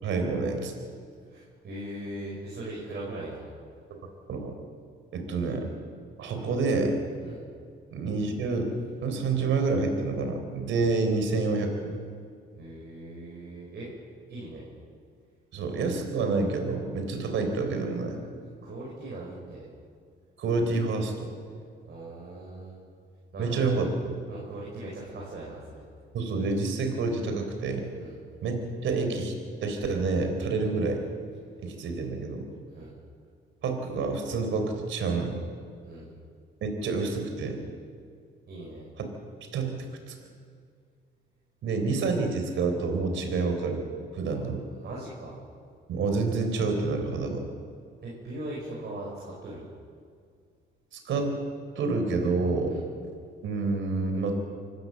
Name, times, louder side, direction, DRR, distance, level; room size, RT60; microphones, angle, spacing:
voice 1, 0.0-0.7 4.0-4.5 5.1-5.7 6.2-6.9 7.9-8.7 9.0-11.9 15.5-18.2 20.4-21.3 23.4-24.2 26.1-27.9 28.4-28.5 28.8-29.3 29.6-31.0 31.6-32.5 33.6-35.4 36.6-37.6 39.0-39.1 39.5-39.7 40.1-40.2 41.6-43.8 44.2-44.6 45.9-47.4 50.9-51.3 51.8-52.8 53.4-54.3, right 3 dB, 75° right, 5 dB, 3.9 m, -28 dB
voice 2, 1.3-3.5 7.2-7.4 10.8-10.9 12.6-13.9 14.3-14.6 18.6-19.7 21.9-22.8 23.3-23.8 24.3-25.8 28.0-28.2 30.6-30.8 32.7-32.9 35.8-36.1 38.5-38.9 44.4-44.5 44.8-45.3 48.0-49.7 52.7-52.8, right 1 dB, 60° right, -4 dB, 5.5 m, -40 dB
25.0 x 13.5 x 7.8 m, 2.2 s
cardioid pair, 90°, 20 cm